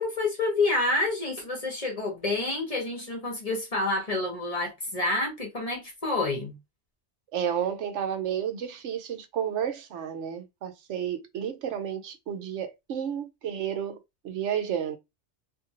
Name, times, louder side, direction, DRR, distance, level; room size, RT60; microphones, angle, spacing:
voice 1, 0.0-6.5, left 2 dB, 35° left, 1.0 m, -28 dB
voice 2, 7.3-14.0 14.2-15.0, right 9 dB, 85° right, 1.0 m, -31 dB
2.7 x 2.5 x 2.8 m
omnidirectional pair, 1.2 m